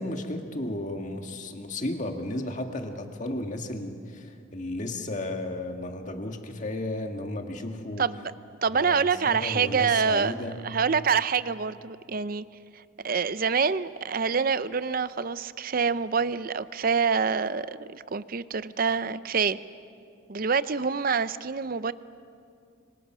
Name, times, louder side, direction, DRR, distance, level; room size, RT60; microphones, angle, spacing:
voice 1, 0.0-8.1 8.7-10.6, left 1 dB, 35° left, 4 dB, 1.8 m, -34 dB
voice 2, 8.0-8.3 8.6-12.4 13.0-19.6 20.3-21.9, right 5 dB, 45° right, 15 dB, 0.6 m, -26 dB
26.0 x 24.5 x 6.2 m, 2.3 s
head